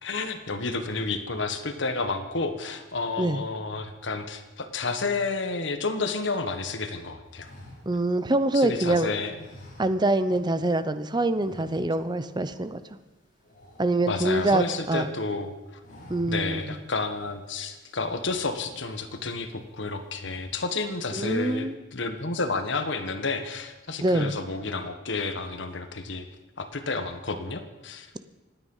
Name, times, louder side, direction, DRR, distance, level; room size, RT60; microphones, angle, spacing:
voice 1, 0.0-7.5 8.5-9.3 14.0-15.5 16.3-26.3 26.6-28.2, left 3 dB, 70° left, 8 dB, 1.5 m, -31 dB
sound 1, 7.3-8.8 9.3-10.4 10.7-10.9 11.3-12.2 12.5-12.7 13.0-14.7 15.1-15.4 15.7-16.6 17.0-17.1 17.9-19.0 19.5-19.8 20.1-20.7, left 1 dB, 45° left, 4.9 m, -50 dB
voice 2, 7.9-9.1 9.8-12.8 13.8-15.1 16.1-16.8 21.1-21.8 24.0-24.3, right 2 dB, 25° right, 12 dB, 0.7 m, -25 dB
25.5 x 9.5 x 5.6 m, 1.1 s
head